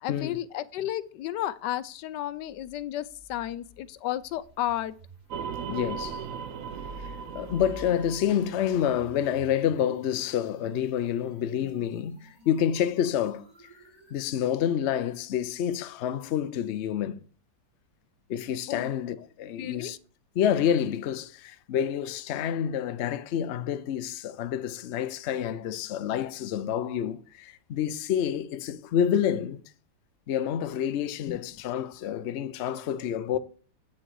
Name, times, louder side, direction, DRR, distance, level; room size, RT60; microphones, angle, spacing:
voice 1, 0.0-4.9 18.7-18.9 19.5-19.9 31.3-31.4, left 12 dB, 90° left, 1.3 m, -33 dB
sound 1, 2.4-14.5, equal, 25° right, 3.0 m, -50 dB
sound 2, 5.3-9.7, right 7 dB, 65° right, 0.9 m, -38 dB
voice 2, 5.7-6.3 7.0-13.5 14.1-17.2 18.3-20.0 20.4-29.6 30.3-33.4, left 9 dB, 60° left, 0.7 m, -28 dB
8.7 x 6.4 x 4.6 m
omnidirectional pair, 1.8 m